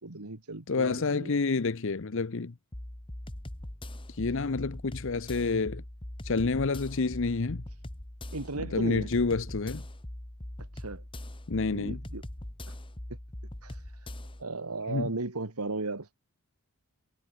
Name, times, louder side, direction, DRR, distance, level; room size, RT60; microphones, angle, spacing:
voice 1, 0.0-1.4 8.3-9.1 10.7-11.0 11.7-12.2 12.7-12.8 13.6-14.1 14.4-16.1, right 3 dB, 85° right, 2.1 m, -36 dB
voice 2, 0.7-2.5 4.1-5.8 6.2-7.6 8.7-9.8 11.5-12.0 14.9-15.1, left 4 dB, 60° left, 0.7 m, -29 dB
sound 1, 2.7-14.4, left 1 dB, 25° left, 1.4 m, -41 dB
head